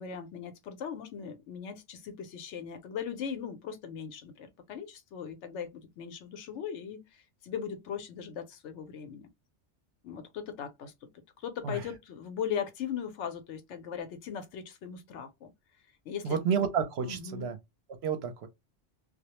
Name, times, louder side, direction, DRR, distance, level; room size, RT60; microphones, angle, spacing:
voice 1, 0.0-9.3 10.0-11.1 11.4-15.5 16.1-16.4 17.0-17.5, left 7 dB, 80° left, 0.9 m, -39 dB
voice 2, 16.2-17.6 18.0-18.5, right 6 dB, 70° right, 0.8 m, -30 dB
2.3 x 2.0 x 2.8 m
omnidirectional pair, 1.2 m